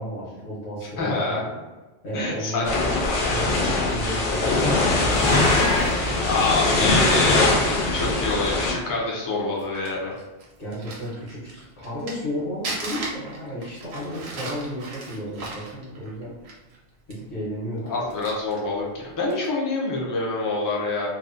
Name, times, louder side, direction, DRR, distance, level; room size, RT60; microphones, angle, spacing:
voice 1, 0.0-1.5 2.0-5.8 10.6-16.3 17.1-18.1, equal, 80° left, -8 dB, 1.2 m, -33 dB
voice 2, 1.0-1.4 2.1-2.7 6.2-10.1 17.8-21.1, left 3 dB, 35° left, -3 dB, 0.3 m, -26 dB
sound 1, 2.6-8.7, left 2 dB, 60° left, 0.7 m, -21 dB
Livestock farm animals working animals, 5.1-6.0, left 1 dB, 40° right, 0.4 m, -28 dB
Crumpling crinkling, 9.3-12.3 12.6-16.8 17.1-17.2 17.8-18.7 19.2-19.5, right 2 dB, 75° right, 0.8 m, -36 dB
2.7 x 2.0 x 2.4 m, 1.2 s
omnidirectional pair, 1.1 m